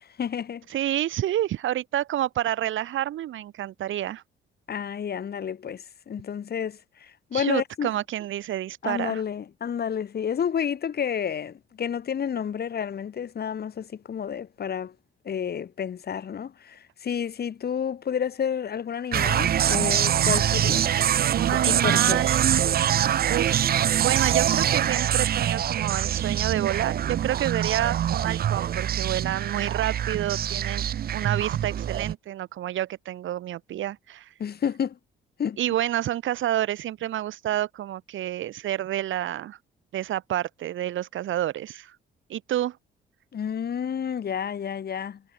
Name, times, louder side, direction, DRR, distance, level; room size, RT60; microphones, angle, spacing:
voice 1, 0.0-0.6 4.7-7.9 8.8-14.9 15.2-20.9 21.8-22.2 34.4-35.0 35.4-35.6 43.3-45.2, left 8 dB, 55° left, 4.2 m, -30 dB
voice 2, 0.7-4.2 7.3-9.2 21.2-22.5 23.3-23.6 24.0-30.8 31.1-34.3 35.6-39.6 39.9-42.0 42.3-42.8, right 12 dB, 75° right, 4.9 m, -29 dB
sound 1, 19.1-32.1, right 10 dB, 50° right, 0.6 m, -24 dB
cardioid pair, 90°, 20 cm